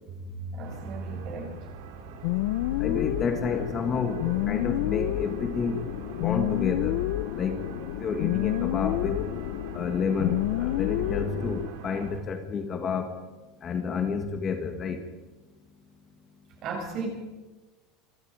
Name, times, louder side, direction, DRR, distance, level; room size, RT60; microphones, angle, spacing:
voice 1, 0.5-1.5 16.6-17.1, right 4 dB, 35° right, 1 dB, 7.6 m, -34 dB
sound 1, 0.6-12.2, right 5 dB, 75° right, 4.3 m, -43 dB
sound 2, 2.2-11.7, left 17 dB, 65° left, 0.7 m, -29 dB
voice 2, 2.8-5.8 6.1-7.0 7.4-7.6 8.0-9.2 9.7-13.2 13.6-15.0, left 5 dB, 25° left, 5 dB, 1.9 m, -29 dB
28.0 x 24.5 x 5.2 m, 1.2 s
supercardioid pair, 170°, 0 cm